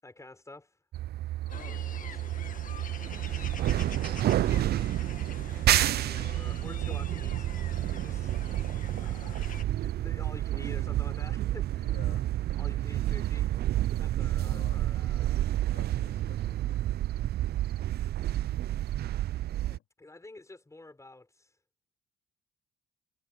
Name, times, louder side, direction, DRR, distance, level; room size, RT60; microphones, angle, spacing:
voice 1, 0.0-0.8 1.7-2.3 6.1-7.5 7.9-11.9 12.5-13.5 14.0-15.4 20.0-21.5, left 2 dB, 15° left, 6.1 m, -49 dB
sound 1, 0.9-19.8, right 13 dB, 60° right, 0.5 m, -30 dB
voice 2, 1.4-2.3 11.8-12.3 14.3-14.8 15.7-16.9 19.6-19.8, left 13 dB, 80° left, 3.0 m, -53 dB
sound 2, 1.5-9.6, left 7 dB, 45° left, 1.9 m, -46 dB
supercardioid pair, 75°, 18 cm